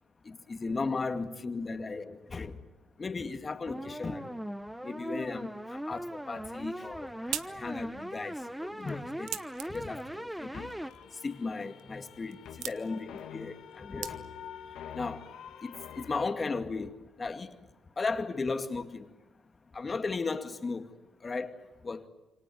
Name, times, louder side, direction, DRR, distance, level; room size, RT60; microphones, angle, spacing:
voice 1, 0.2-2.6 3.0-4.4 4.8-10.7 11.1-14.3 14.9-15.3 15.6-17.6 18.0-19.1 19.7-22.1, left 4 dB, 30° left, 2.2 m, -36 dB
sound 1, 3.7-10.9, equal, 5° right, 1.0 m, -40 dB
sound 2, 6.6-14.6, right 12 dB, 85° right, 1.1 m, -45 dB
sound 3, 10.5-16.3, left 8 dB, 80° left, 2.4 m, -46 dB
28.0 x 25.0 x 7.9 m
cardioid pair, 90°, 0 cm